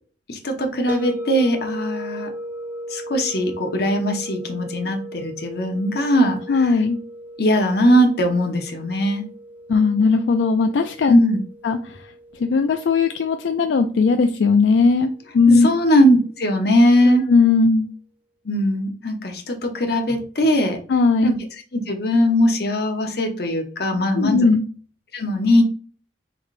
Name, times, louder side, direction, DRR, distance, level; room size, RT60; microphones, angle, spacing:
voice 1, 0.3-2.3 2.9-6.8 7.4-9.2 11.1-11.4 15.5-17.2 18.4-20.8 21.2-21.4 21.7-24.5 25.1-25.6, equal, 60° left, 3 dB, 0.9 m, -20 dB
sound 1, 0.9-15.8, equal, 10° right, 0.4 m, -37 dB
voice 2, 6.5-7.0 9.7-11.2 11.6-11.8 12.4-15.7 17.1-17.9 20.9-21.3 24.2-24.7, left 4 dB, 80° left, 6 dB, 0.3 m, -18 dB
3.9 x 3.4 x 2.5 m, 0.40 s
head